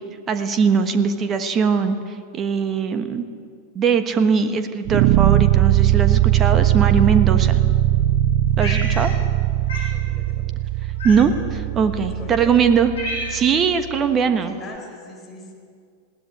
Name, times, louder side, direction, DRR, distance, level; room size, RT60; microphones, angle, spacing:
voice 1, 0.3-2.0 2.3-3.2 3.7-7.6 8.6-9.1 11.0-12.9 13.3-14.5, right 6 dB, 25° right, 9 dB, 1.2 m, -20 dB
sound 1, 4.9-14.0, right 14 dB, 50° right, 0.5 m, -20 dB
Cat, 8.6-9.4 9.7-9.9 11.0-11.5 12.2-12.3 12.6-13.6, left 1 dB, 65° left, 6.5 m, -31 dB
voice 2, 9.9-10.5 12.0-12.6 14.4-15.5, left 2 dB, 20° left, 1 dB, 4.3 m, -40 dB
20.5 x 17.0 x 8.6 m, 2.2 s
figure-of-eight pair, 90°, 0 cm